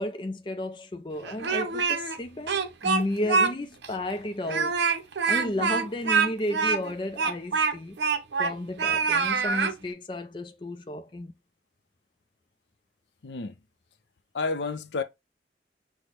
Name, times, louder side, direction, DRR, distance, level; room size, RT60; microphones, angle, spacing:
voice 1, 0.0-4.8 5.3-8.0 8.4-11.3, left 1 dB, 25° left, 0.4 m, -33 dB
Speech, 1.2-2.2 2.5-3.5 3.8-3.9 4.4-8.5 8.8-9.7, right 5 dB, 85° right, 0.6 m, -25 dB
voice 2, 13.2-13.5 14.3-15.0, left 4 dB, 80° left, 0.6 m, -30 dB
5.9 x 2.1 x 3.2 m
head